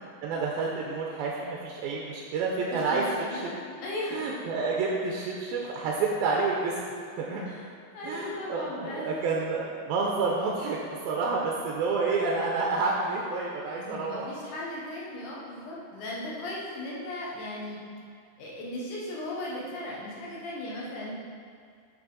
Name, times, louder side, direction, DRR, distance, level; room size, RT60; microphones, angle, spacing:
voice 1, 0.2-3.1 3.3-3.4 4.1-6.8 7.2-7.5 8.0-14.3, right 4 dB, 90° right, -2 dB, 2.6 m, -29 dB
voice 2, 2.5-4.3 7.5-7.7 7.9-9.4 13.8-17.8 18.4-21.2, left 1 dB, 65° left, -5 dB, 2.4 m, -37 dB
8.9 x 6.3 x 3.9 m, 2.2 s
omnidirectional pair, 4.2 m